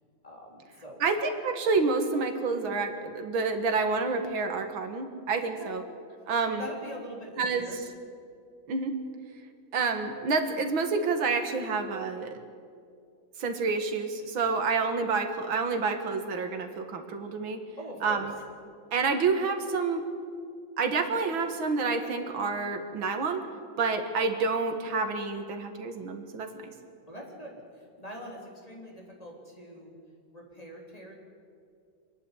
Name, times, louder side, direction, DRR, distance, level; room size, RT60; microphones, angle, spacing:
voice 1, 0.2-1.0 5.5-5.8 6.5-7.8 17.8-18.3 27.1-29.9 30.3-31.2, equal, 15° left, -1 dB, 3.7 m, -43 dB
voice 2, 1.0-5.8 6.3-6.7 7.4-7.8 8.7-8.9 9.7-12.4 13.4-17.6 18.0-18.3 18.9-20.1 20.8-23.4 23.8-26.7, right 4 dB, 80° right, 6 dB, 2.4 m, -28 dB
25.5 x 11.0 x 9.9 m, 2.3 s
omnidirectional pair, 2.2 m